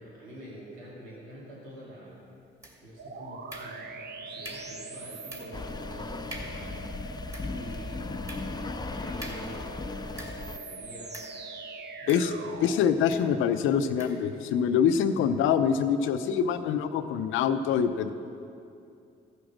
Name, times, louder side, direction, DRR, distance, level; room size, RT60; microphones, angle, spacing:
voice 1, 0.0-2.2 2.8-7.2 7.5-8.1 8.9-11.2 12.0-12.8, equal, 90° right, -6 dB, 2.5 m, -47 dB
sound 1, 2.6-3.0 3.5-4.1 4.4-4.8 5.3-5.7 6.0-6.1 6.3-6.7 7.1-10.6 11.1-11.4 12.1-12.7 13.1-13.3 14.0-14.3, right 1 dB, 15° right, 2.4 m, -45 dB
sound 2, 3.0-12.9, right 3 dB, 55° right, 0.8 m, -43 dB
sound 3, 5.5-10.6, left 3 dB, 20° left, 0.5 m, -37 dB
voice 2, 12.6-18.1, left 7 dB, 80° left, 10 dB, 0.6 m, -25 dB
14.5 x 6.6 x 6.0 m, 2.5 s
supercardioid pair, 55°, 20 cm